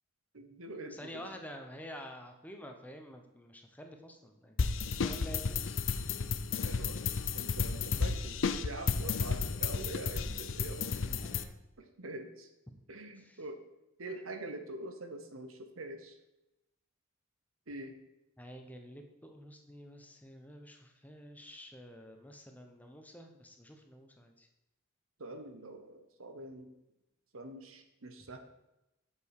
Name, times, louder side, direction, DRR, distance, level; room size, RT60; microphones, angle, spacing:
voice 1, 0.3-1.3 5.4-5.5 6.6-7.0 7.3-11.1 11.8-12.5 12.9-13.6 14.0-16.2 17.7-18.0 25.2-26.7 27.3-28.4, right 2 dB, 80° right, 7 dB, 1.1 m, -45 dB
voice 2, 0.9-5.8 9.0-9.2 11.1-11.5 13.2-13.4 18.4-24.5, equal, 10° left, 4 dB, 0.9 m, -49 dB
sound 1, 4.6-11.4, left 5 dB, 65° left, 0.6 m, -33 dB
8.4 x 7.0 x 4.8 m, 0.93 s
head